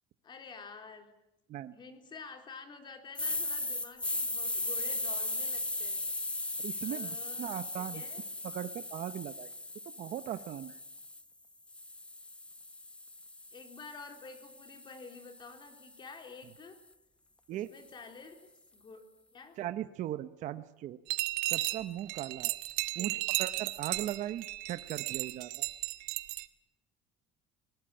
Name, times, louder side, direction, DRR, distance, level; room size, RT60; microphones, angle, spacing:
voice 1, 0.2-1.1 1.7-6.2 6.8-8.2 13.5-16.8 17.5-19.6 23.0-23.3, left 4 dB, 30° left, 6 dB, 3.5 m, -50 dB
sound 1, 3.1-11.2 11.7-15.9, left 2 dB, 5° left, 0.8 m, -38 dB
voice 2, 6.6-8.0 8.4-9.5 10.0-10.8 17.5-17.7 19.6-21.0 21.5-22.6 22.9-25.7, right 12 dB, 50° right, 11 dB, 0.9 m, -38 dB
sound 2, 21.1-26.5, right 19 dB, 80° right, 1.4 m, -34 dB
20.5 x 19.5 x 8.8 m, 0.93 s
cardioid pair, 145°, 16 cm